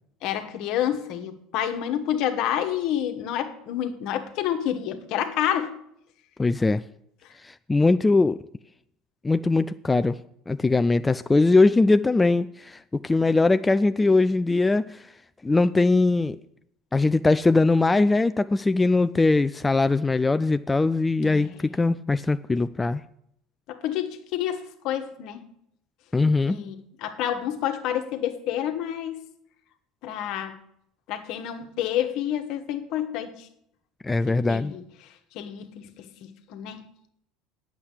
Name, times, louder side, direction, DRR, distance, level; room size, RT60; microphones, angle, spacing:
voice 1, 0.2-5.7 21.2-21.6 23.7-25.4 26.5-29.3 30.0-30.6 31.1-33.3 34.3-34.8 35.3-36.1 36.5-36.8, left 10 dB, 60° left, 8 dB, 1.3 m, -29 dB
voice 2, 6.4-6.8 7.4-8.4 9.2-10.2 10.5-15.1 15.4-16.4 16.9-23.0 26.1-26.6 34.0-34.7, left 3 dB, 15° left, 12 dB, 0.4 m, -21 dB
8.7 x 7.3 x 8.3 m, 0.73 s
hypercardioid pair, 70°, 0 cm